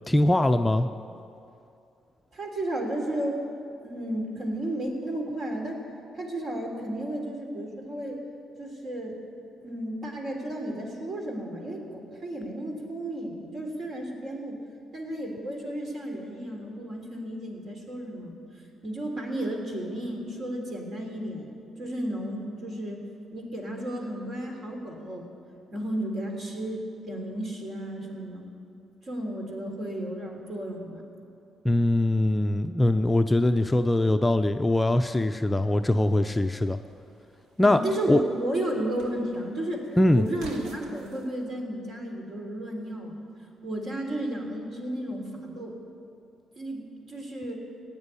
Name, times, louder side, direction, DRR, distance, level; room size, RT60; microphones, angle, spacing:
voice 1, 0.1-0.9 31.6-36.8 37.6-37.8 38.1-38.2 40.0-40.2, left 1 dB, 15° left, 7 dB, 0.5 m, -22 dB
voice 2, 2.3-3.4 3.8-5.8 6.1-8.2 8.6-9.2 9.6-14.6 14.9-18.3 18.8-21.5 21.8-23.0 23.3-25.3 25.7-28.5 29.0-31.0 37.6-39.8 40.1-43.1 43.6-45.7 46.5-47.6, right 1 dB, 50° right, 1 dB, 3.3 m, -33 dB
sound 1, 36.3-41.3, right 2 dB, 90° right, 1.7 m, -50 dB
16.0 x 9.0 x 9.7 m, 2.6 s
cardioid pair, 90°, 0 cm